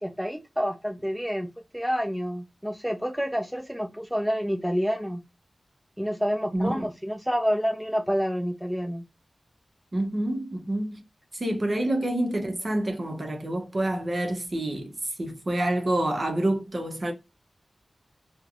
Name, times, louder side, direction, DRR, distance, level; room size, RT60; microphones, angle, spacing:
voice 1, 0.0-5.2 6.0-9.0, equal, ahead, 0.5 m, -28 dB
voice 2, 6.5-6.9 9.9-11.0 11.3-14.9 15.2-17.1, right 1 dB, 40° right, 0.7 m, -27 dB
3.2 x 2.1 x 2.3 m
wide cardioid pair, 115°, 0 cm